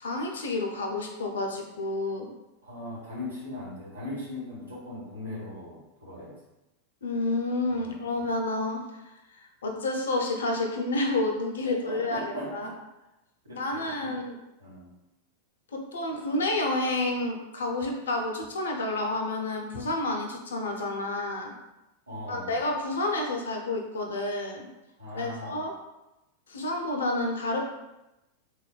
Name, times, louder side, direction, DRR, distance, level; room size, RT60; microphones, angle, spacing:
voice 1, 0.0-2.3 7.0-9.1 9.6-12.7 13.5-14.4 15.7-21.5 22.3-24.7 25.1-25.7 26.5-27.6, left 2 dB, 65° left, 3 dB, 0.4 m, -29 dB
voice 2, 2.6-6.4 7.7-8.3 11.6-12.8 13.4-14.1 14.6-14.9 22.1-22.6 25.0-25.6, left 1 dB, 75° right, -6 dB, 1.0 m, -39 dB
3.1 x 2.3 x 2.3 m, 0.96 s
figure-of-eight pair, 90°, 0 cm